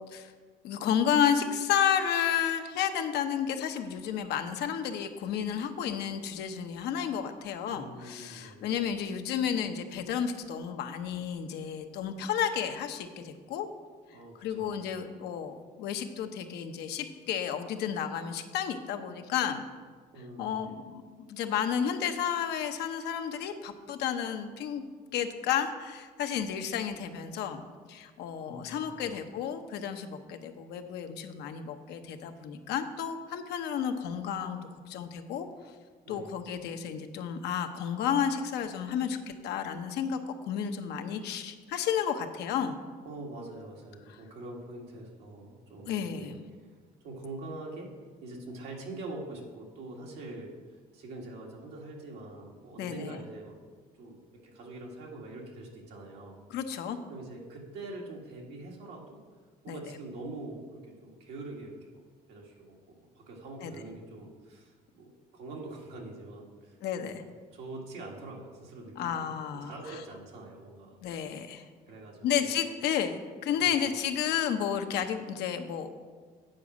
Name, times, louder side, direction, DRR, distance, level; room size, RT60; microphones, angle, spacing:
voice 1, 0.6-13.7 14.4-19.6 20.4-24.8 25.1-27.6 27.9-34.6 34.9-35.5 36.1-39.2 39.4-40.2 40.5-42.7 44.1-44.2 45.9-46.4 52.8-53.2 56.5-57.0 59.7-59.8 63.6-63.7 66.8-67.2 69.0-69.7 71.0-71.6 72.2-75.9, left 8 dB, 80° left, 7 dB, 0.8 m, -32 dB
voice 2, 7.7-8.8 14.1-15.1 20.1-20.8 28.4-29.2 36.0-36.4 43.0-46.3 46.6-46.7 47.0-47.9 48.2-53.5 54.0-56.5 57.1-59.2 59.6-62.0 62.3-67.1 67.5-69.3 69.6-71.0 71.2-71.4 71.9-72.5 73.5-73.9, right 2 dB, 90° right, -1 dB, 1.8 m, -44 dB
8.8 x 4.9 x 6.2 m, 1.5 s
cardioid pair, 110°, 17 cm